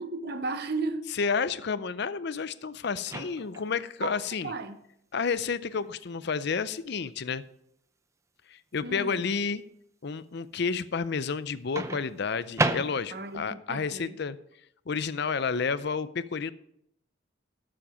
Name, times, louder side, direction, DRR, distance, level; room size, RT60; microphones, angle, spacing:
voice 1, 0.0-1.1 4.0-4.8 8.8-9.3 13.1-14.2, right 3 dB, 55° right, 1.0 m, -35 dB
voice 2, 1.2-4.5 5.1-7.4 8.5-9.6 10.0-14.4 14.9-16.5, left 5 dB, 55° left, 0.5 m, -30 dB
Microwave oven, 3.0-3.7 5.7-5.9 11.8-13.4, right 2 dB, 15° right, 0.6 m, -31 dB
12.5 x 7.7 x 5.0 m
head